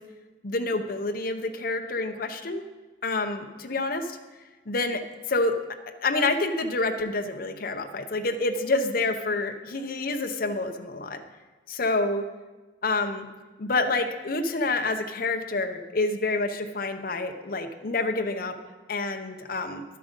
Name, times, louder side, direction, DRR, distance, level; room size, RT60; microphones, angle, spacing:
voice 1, 0.4-2.6 3.0-4.2 4.7-5.0 5.3-5.5 6.0-11.2 11.7-12.2 12.8-13.3 13.6-18.5 18.9-19.8, left 2 dB, 50° left, 6 dB, 0.8 m, -28 dB
11.5 x 7.7 x 5.3 m, 1.3 s
head